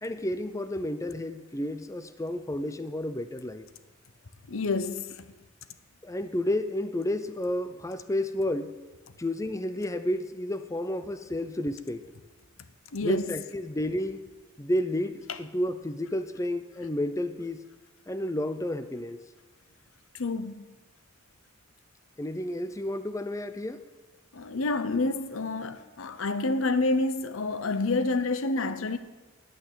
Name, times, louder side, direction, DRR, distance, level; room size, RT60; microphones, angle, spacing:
voice 1, 0.0-3.6 6.0-8.8 9.2-12.0 13.0-14.2 14.6-17.6 18.1-19.2 22.2-23.8, left 1 dB, 15° left, 0.5 m, -31 dB
voice 2, 4.5-5.2 12.9-13.2 20.2-20.6 24.3-29.0, left 3 dB, 75° left, 0.8 m, -28 dB
9.1 x 9.1 x 9.6 m
head